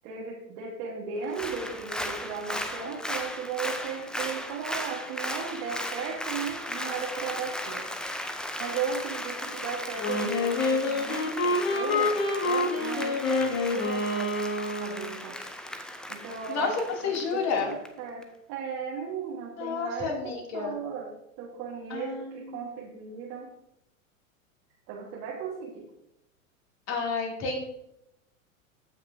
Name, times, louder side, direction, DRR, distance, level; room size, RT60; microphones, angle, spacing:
voice 1, 0.0-7.9 8.6-12.2 12.4-14.5 14.8-15.4 16.1-16.8 17.0-21.1 21.4-23.5 24.9-25.9, right 6 dB, 50° right, -3 dB, 1.7 m, -36 dB
Applause, 1.2-17.9 18.2-18.3, left 1 dB, ahead, 0.4 m, -36 dB
Wind instrument woodwind instrument, 10.0-15.2, left 2 dB, 75° left, 2.3 m, -27 dB
voice 2, 17.0-17.7 19.6-20.8 21.9-22.6 26.9-27.6, left 5 dB, 40° left, 0 dB, 2.8 m, -30 dB
15.0 x 5.9 x 2.7 m, 0.82 s
hypercardioid pair, 105°, 41 cm